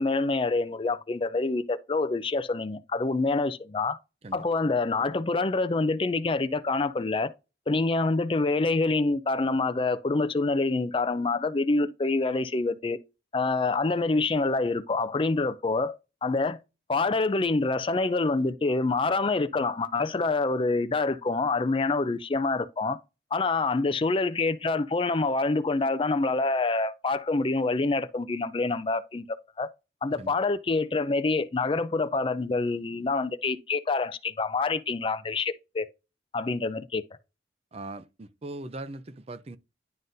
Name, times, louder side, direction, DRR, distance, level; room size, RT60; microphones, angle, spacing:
voice 1, 0.0-4.0 4.3-7.3 7.7-13.0 13.3-16.6 16.9-23.0 23.3-29.3 29.6-29.7 30.0-35.9 36.3-37.0, left 3 dB, 30° left, 0.4 m, -26 dB
voice 2, 37.7-39.6, right 2 dB, 35° right, 0.5 m, -40 dB
10.5 x 3.9 x 2.6 m
head